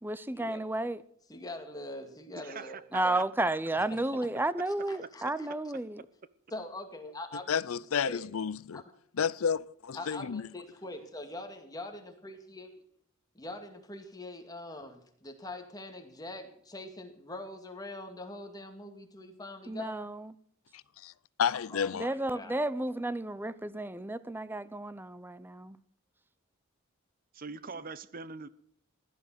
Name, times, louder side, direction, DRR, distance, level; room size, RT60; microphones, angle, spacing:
voice 1, 0.0-1.0 2.9-6.0 19.7-20.3 22.0-25.8, right 2 dB, 10° right, 0.6 m, -32 dB
voice 2, 1.3-2.8 3.0-3.2 3.8-4.0 4.9-5.5 6.5-7.5 8.0-8.2 8.7-8.8 9.9-12.7 13.3-20.1 21.5-22.6, left 1 dB, 20° left, 2.2 m, -43 dB
voice 3, 2.3-3.5 4.8-4.9 5.2-5.3 27.3-28.5, right 4 dB, 45° right, 0.8 m, -43 dB
voice 4, 7.5-8.8 9.1-10.5 20.7-21.1 21.4-22.1, left 7 dB, 80° left, 0.5 m, -31 dB
16.0 x 12.0 x 6.3 m
head